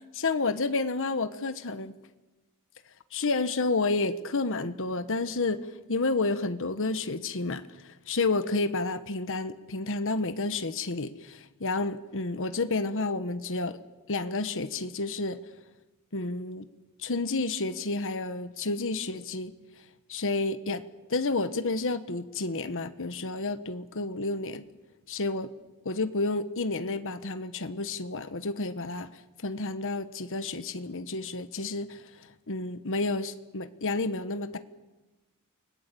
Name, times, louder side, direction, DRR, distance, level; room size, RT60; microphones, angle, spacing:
voice 1, 0.1-1.9 3.1-13.8 14.1-15.4 16.1-16.7 17.0-19.5 20.1-20.8 21.1-24.6 25.1-25.5 25.8-29.1 29.4-32.0 32.5-34.6, left 3 dB, 60° left, 11 dB, 1.2 m, -30 dB
29.5 x 20.5 x 8.5 m, 1.1 s
head